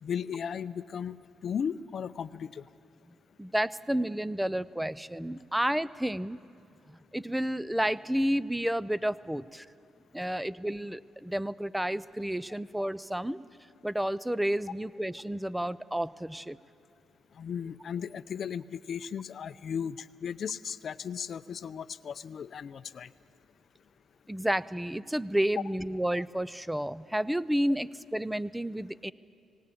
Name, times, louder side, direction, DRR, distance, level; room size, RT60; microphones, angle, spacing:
voice 1, 0.0-1.2 1.4-2.7 17.3-23.1, left 7 dB, 55° left, 15 dB, 0.5 m, -36 dB
voice 2, 3.4-6.4 6.9-9.7 10.1-13.4 13.8-16.6 24.3-29.1, right 1 dB, 5° right, 18 dB, 0.5 m, -31 dB
19.0 x 18.0 x 8.6 m, 2.6 s
cardioid pair, 90°, 0 cm